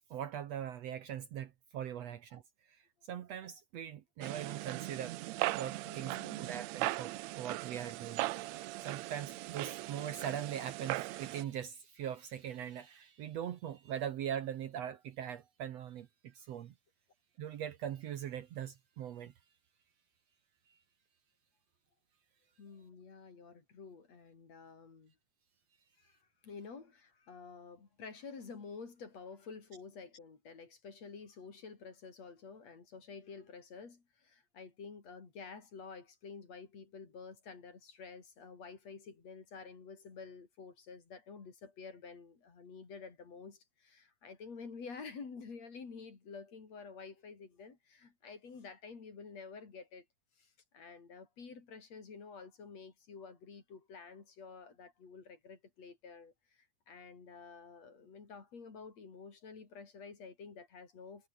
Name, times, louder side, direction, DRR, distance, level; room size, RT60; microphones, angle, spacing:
voice 1, 0.1-2.4 2.7-5.2 5.5-16.7 17.4-19.3 20.7-20.8, right 10 dB, 65° right, 2.0 m, -41 dB
sound 1, 4.2-11.4, right 18 dB, 80° right, 1.6 m, -39 dB
voice 2, 5.8-6.7 22.6-25.1 26.0-50.1 50.4-61.3, left 5 dB, 55° left, 5.0 m, -50 dB
omnidirectional pair, 3.7 m